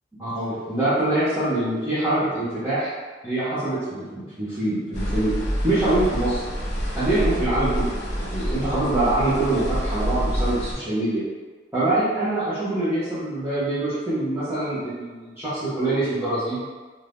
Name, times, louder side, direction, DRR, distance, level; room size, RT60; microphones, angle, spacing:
voice 1, 0.2-2.9 3.2-5.3 5.6-6.4 7.0-7.9 8.2-11.2 11.7-16.6, right 2 dB, 15° right, -14 dB, 0.8 m, -24 dB
Rain Car Interior A, 4.9-10.7, equal, 40° left, 1.1 m, -27 dB
2.8 x 2.4 x 3.4 m, 1.4 s
head